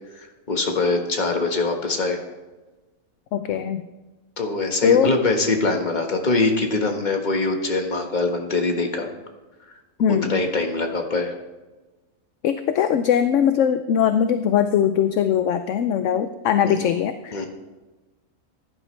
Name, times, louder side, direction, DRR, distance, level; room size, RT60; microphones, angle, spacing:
voice 1, 0.1-2.2 4.4-9.1 10.3-11.3 16.6-16.8 17.3-17.5, left 3 dB, 35° left, 3 dB, 1.5 m, -23 dB
voice 2, 3.3-3.9 4.8-5.1 10.0-10.4 12.4-17.5, left 9 dB, 70° left, 10 dB, 0.9 m, -21 dB
15.5 x 11.0 x 3.3 m, 1.2 s
omnidirectional pair, 1.4 m